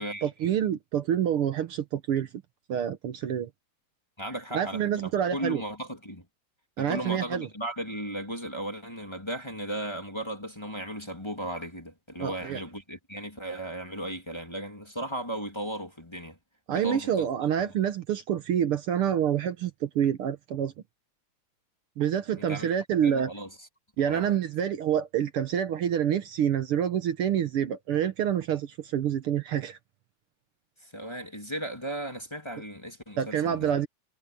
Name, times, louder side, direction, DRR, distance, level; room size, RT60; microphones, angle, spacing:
voice 1, 0.2-2.3 2.7-3.5 4.5-5.6 6.8-7.5 12.2-12.6 16.7-20.7 22.0-23.3 24.0-29.8 33.2-33.9, right 9 dB, 65° right, 1.5 m, -27 dB
voice 2, 4.2-6.3 6.8-16.4 16.7-17.3 17.6-17.7 22.3-22.7 23.0-23.7 24.1-24.3 30.8-33.7, right 1 dB, 10° left, 2.3 m, -36 dB
omnidirectional pair, 3.4 m